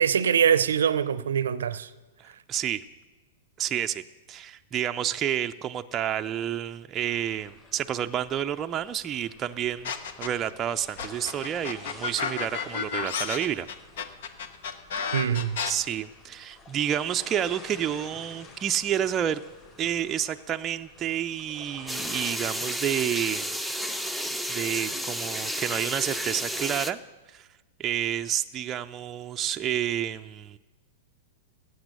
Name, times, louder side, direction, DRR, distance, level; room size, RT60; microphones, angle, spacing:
voice 1, 0.0-1.9 15.1-15.6, right 8 dB, 75° right, 0.6 m, -23 dB
voice 2, 2.2-2.8 3.6-4.0 4.3-9.9 10.2-13.7 15.7-19.4 19.8-23.6 24.1-27.0 27.3-27.5 27.8-30.6, right 10 dB, 25° right, 0.4 m, -29 dB
sound 1, 7.0-22.3, left 3 dB, 30° left, 4.9 m, -50 dB
sound 2, 9.8-10.5 11.0-15.7, left 6 dB, 65° left, 1.0 m, -31 dB
sound 3, 21.9-26.9, equal, 5° left, 0.7 m, -32 dB
16.0 x 8.0 x 6.7 m
hypercardioid pair, 115°, 0 cm